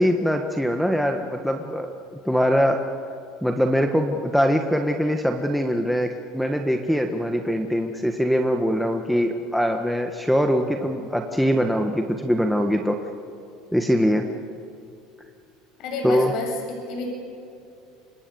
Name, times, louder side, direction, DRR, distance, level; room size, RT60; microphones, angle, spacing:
voice 1, 0.0-1.9 2.2-2.8 3.4-13.0 13.7-14.3 16.0-16.3, equal, ahead, 5 dB, 1.4 m, -22 dB
voice 2, 15.8-17.1, left 2 dB, 55° left, 1 dB, 8.0 m, -29 dB
27.0 x 25.0 x 7.1 m, 2.6 s
supercardioid pair, 125°, 0 cm